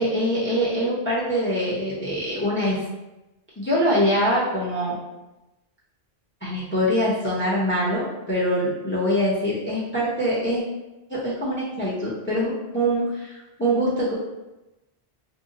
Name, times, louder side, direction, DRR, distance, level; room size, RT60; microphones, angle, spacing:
voice 1, 0.0-2.8 3.6-5.0 6.4-10.6 11.1-14.1, equal, 15° left, -7 dB, 0.6 m, -24 dB
2.6 x 2.0 x 3.7 m, 1.0 s
omnidirectional pair, 1.1 m